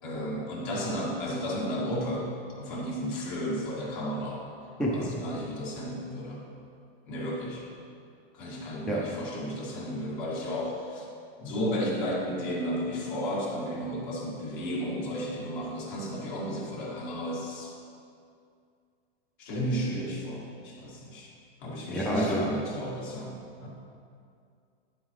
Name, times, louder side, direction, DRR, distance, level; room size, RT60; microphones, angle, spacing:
voice 1, 0.0-2.3 2.6-4.4 4.9-6.4 7.1-7.6 8.3-11.0 11.4-17.7 19.4-21.3 21.6-23.7, equal, 50° left, -4 dB, 2.2 m, -33 dB
voice 2, 21.9-22.4, equal, ahead, -4 dB, 0.4 m, -27 dB
9.9 x 7.6 x 3.2 m, 2.4 s
supercardioid pair, 155°, 31 cm